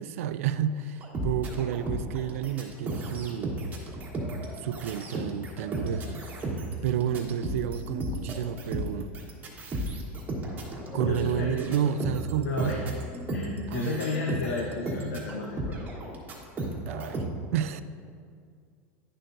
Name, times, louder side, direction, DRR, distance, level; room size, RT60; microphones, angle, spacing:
voice 1, 0.0-3.6 4.6-6.2 6.8-9.1 10.9-12.8 13.7-14.0 14.3-14.4 16.9-17.2 17.5-17.8, right 9 dB, 85° right, 13 dB, 0.3 m, -30 dB
sound 1, 1.0-17.3, right 1 dB, 25° right, 1.2 m, -34 dB
voice 2, 10.9-11.6 12.4-12.8 13.3-15.8, left 3 dB, 90° left, 0 dB, 0.8 m, -32 dB
10.0 x 6.5 x 2.6 m, 2.2 s
supercardioid pair, 135°, 7 cm